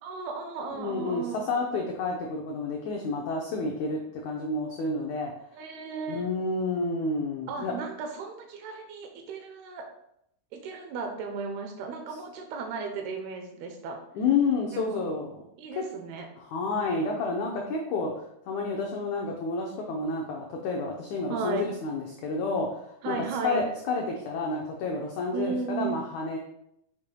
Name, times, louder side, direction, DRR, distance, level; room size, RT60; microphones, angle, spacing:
voice 1, 0.0-1.8 5.5-6.3 7.5-9.9 10.5-14.0 14.7-15.0 15.6-16.3 21.3-21.7 23.0-23.7 25.3-26.0, right 5 dB, 80° right, 4 dB, 2.8 m, -35 dB
voice 2, 0.8-5.3 6.1-7.7 14.1-15.4 15.7-15.8 16.5-23.2 23.4-26.4, left 3 dB, 90° left, 0 dB, 1.6 m, -30 dB
9.0 x 6.5 x 2.3 m, 0.76 s
omnidirectional pair, 4.5 m